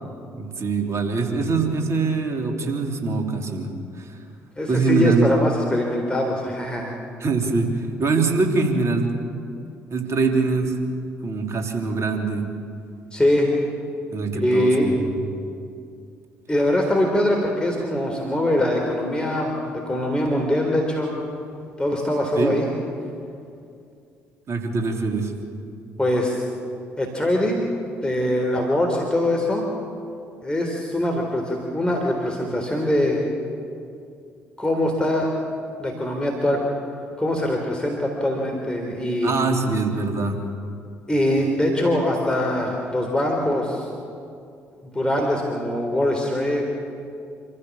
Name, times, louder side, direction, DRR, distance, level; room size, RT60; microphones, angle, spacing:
voice 1, 0.3-3.7 4.0-4.1 4.7-5.3 7.2-9.1 9.9-10.8 11.2-12.5 14.1-15.0 22.4-22.5 24.5-25.3 39.2-40.4, right 4 dB, 40° right, 3 dB, 3.4 m, -23 dB
voice 2, 4.6-6.9 13.1-13.5 14.3-14.9 16.5-21.1 21.8-22.7 26.0-26.4 27.0-27.6 28.0-29.7 30.4-33.3 34.6-35.3 35.8-36.6 37.2-39.3 41.1-43.9 44.9-46.6, left 1 dB, 10° left, 0 dB, 3.8 m, -22 dB
27.0 x 15.0 x 7.4 m, 2.5 s
figure-of-eight pair, 50°, 7 cm